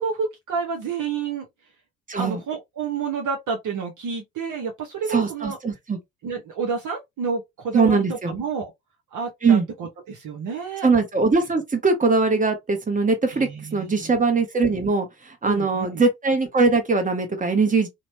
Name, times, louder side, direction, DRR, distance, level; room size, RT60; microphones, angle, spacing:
voice 1, 0.0-1.4 2.2-5.6 6.2-8.7 9.1-10.9 13.3-14.1 15.4-16.0, right 5 dB, 45° right, 0.9 m, -29 dB
voice 2, 2.1-2.4 5.1-6.0 7.7-8.3 9.4-9.7 10.8-17.9, right 4 dB, 20° right, 1.2 m, -21 dB
2.8 x 2.1 x 3.0 m
figure-of-eight pair, 50°, 42 cm